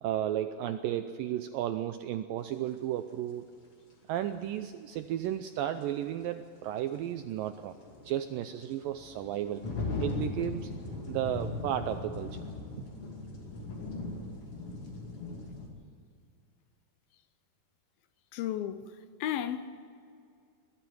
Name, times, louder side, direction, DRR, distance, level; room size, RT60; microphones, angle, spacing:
voice 1, 0.0-3.5 4.1-7.8 8.1-9.6 10.0-10.7 11.1-12.3 12.8-12.9, right 11 dB, 85° right, 2.0 m, -33 dB
sound 1, 2.7-2.8 5.2-5.3 5.8-5.9 7.4-15.7, left 3 dB, 40° left, 3.1 m, -38 dB
voice 2, 18.3-19.8, left 10 dB, 75° left, 2.4 m, -34 dB
22.0 x 13.0 x 9.3 m
omnidirectional pair, 4.7 m